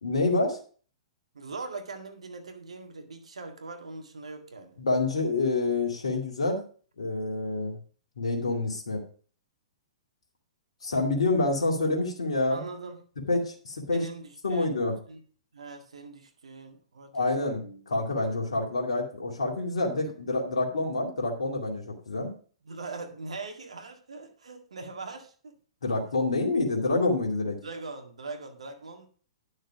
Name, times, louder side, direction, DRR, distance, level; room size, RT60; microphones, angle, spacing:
voice 1, 0.0-0.6 4.8-6.6 7.0-7.8 8.2-9.0 10.8-12.6 13.3-14.0 14.4-14.9 17.1-22.3 25.8-27.6, left 2 dB, 80° left, 0 dB, 2.3 m, -27 dB
voice 2, 1.3-4.8 12.5-13.0 13.9-14.8 15.1-15.2 15.5-17.5 22.6-25.6 27.6-29.1, right 3 dB, 80° right, 5 dB, 1.9 m, -41 dB
10.5 x 6.5 x 4.8 m, 0.42 s
hypercardioid pair, 115°, 3 cm